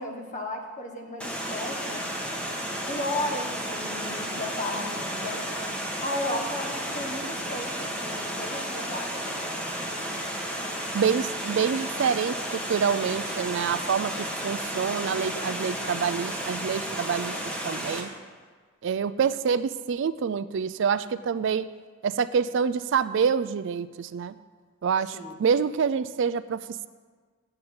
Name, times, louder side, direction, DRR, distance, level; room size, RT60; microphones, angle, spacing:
voice 1, 0.0-2.1 2.9-5.5 5.8-9.4 25.1-25.4, left 1 dB, 40° left, 3 dB, 1.4 m, -34 dB
Water, 1.2-18.0, equal, 5° left, 1.3 m, -33 dB
voice 2, 10.9-18.1 18.8-21.7 22.0-24.4 24.8-26.9, right 6 dB, 65° right, 15 dB, 0.4 m, -27 dB
7.9 x 7.9 x 8.6 m, 1.5 s
head